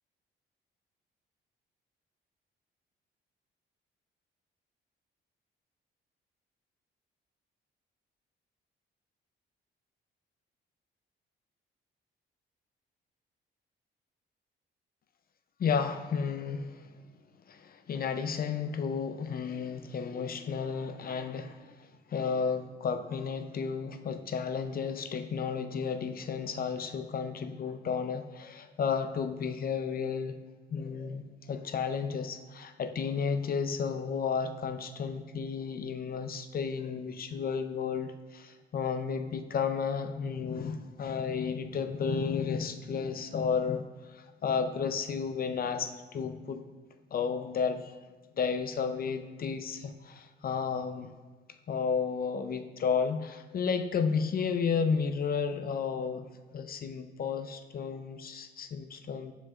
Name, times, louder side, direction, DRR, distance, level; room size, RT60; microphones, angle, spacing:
voice 1, 15.6-16.9 17.5-30.4 30.7-46.6 47.1-47.9 48.4-51.1 51.7-56.3 56.5-59.3, left 6 dB, 50° left, 8 dB, 0.6 m, -32 dB
12.0 x 5.2 x 2.4 m, 1.3 s
cardioid pair, 90°, 20 cm